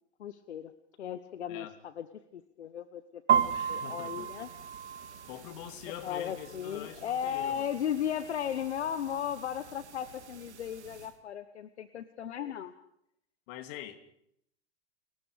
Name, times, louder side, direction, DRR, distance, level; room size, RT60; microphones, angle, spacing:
voice 1, 0.2-0.7 1.0-2.1 2.3-4.5 6.0-12.7, left 9 dB, 75° left, 12 dB, 1.3 m, -36 dB
sound 1, 3.3-11.1, right 8 dB, 80° right, 2.1 m, -35 dB
voice 2, 3.5-4.5 5.3-7.7 13.5-13.9, left 11 dB, 55° left, 8 dB, 3.0 m, -44 dB
30.0 x 21.5 x 5.1 m, 0.72 s
hypercardioid pair, 100°, 33 cm